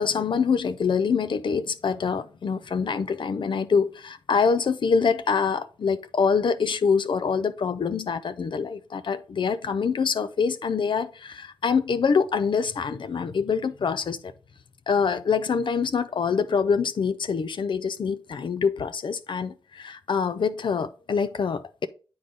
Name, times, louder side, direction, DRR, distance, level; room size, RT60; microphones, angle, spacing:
voice 1, 0.0-14.3 14.9-21.9, left 5 dB, 60° left, 0.5 m, -25 dB
8.6 x 3.8 x 3.8 m
cardioid pair, 60°, 9 cm